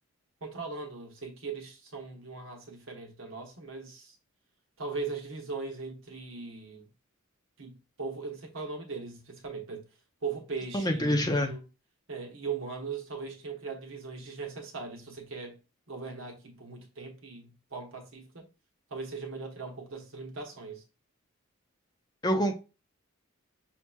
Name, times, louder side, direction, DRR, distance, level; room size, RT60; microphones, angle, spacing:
voice 1, 0.4-4.2 4.8-6.9 7.6-9.8 10.2-11.7 12.1-15.6 15.9-18.4 18.9-20.8, right 4 dB, 60° right, 1.0 m, -39 dB
voice 2, 10.7-11.5 22.2-22.5, equal, 20° left, 0.6 m, -26 dB
5.8 x 2.8 x 2.2 m
head